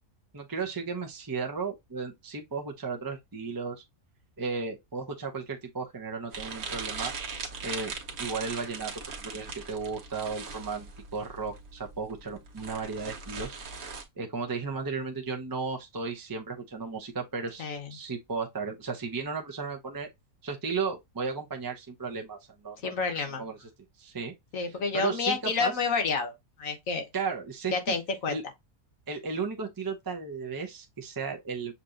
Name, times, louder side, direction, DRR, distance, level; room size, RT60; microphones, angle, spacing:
voice 1, 0.3-3.8 4.4-7.1 7.6-8.9 9.2-20.1 20.4-23.6 24.0-24.3 24.9-25.7 27.1-27.7 28.3-28.4 29.1-31.7, right 4 dB, 25° right, 0.4 m, -35 dB
sound 1, 6.3-14.0, right 5 dB, 70° right, 1.4 m, -39 dB
voice 2, 22.8-23.4 24.5-26.3 26.6-27.1 27.7-28.4, left 4 dB, 65° left, 1.5 m, -29 dB
6.7 x 2.8 x 2.5 m
omnidirectional pair, 1.5 m